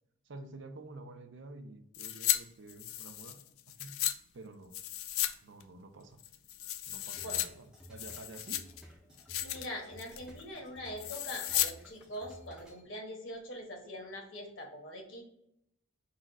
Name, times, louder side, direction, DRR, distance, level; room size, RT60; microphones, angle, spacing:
voice 1, 0.2-3.4 3.8-4.0 4.3-4.8 5.4-6.2 6.9-8.7, right 2 dB, 60° right, 8 dB, 0.5 m, -49 dB
sound 1, 1.9-2.4 2.7-4.1 4.7-5.3 5.6-5.7 6.2-7.5 7.8-8.8 9.2-9.7 10.0-10.3 11.0-11.7 12.0-12.1, left 13 dB, 90° left, 0.4 m, -34 dB
sound 2, 7.2-12.8, equal, 5° right, 0.6 m, -55 dB
voice 2, 9.4-15.2, equal, 65° left, 0 dB, 1.2 m, -43 dB
4.1 x 2.4 x 4.0 m, 0.78 s
head